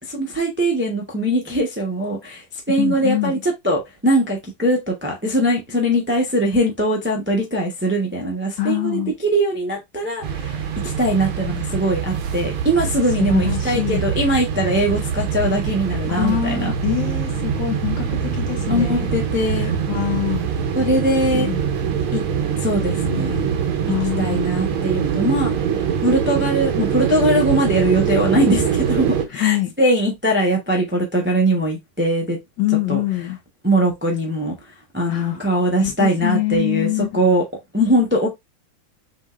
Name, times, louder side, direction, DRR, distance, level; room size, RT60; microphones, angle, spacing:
voice 1, 0.0-16.7 18.7-19.7 20.7-21.5 22.1-22.2 22.6-23.5 24.2-25.5 26.0-32.4 32.9-33.0 33.6-37.4 37.7-38.3, right 1 dB, 15° right, 0.4 m, -21 dB
voice 2, 2.8-3.3 8.6-9.1 13.2-14.0 16.1-19.1 19.9-20.5 21.3-21.6 23.9-24.4 29.4-29.7 32.6-33.4 35.1-35.4 35.8-37.2, left 15 dB, 65° left, 1.6 m, -24 dB
sound 1, 10.2-29.3, right 7 dB, 90° right, 1.7 m, -23 dB
6.1 x 3.0 x 2.5 m
omnidirectional pair, 2.2 m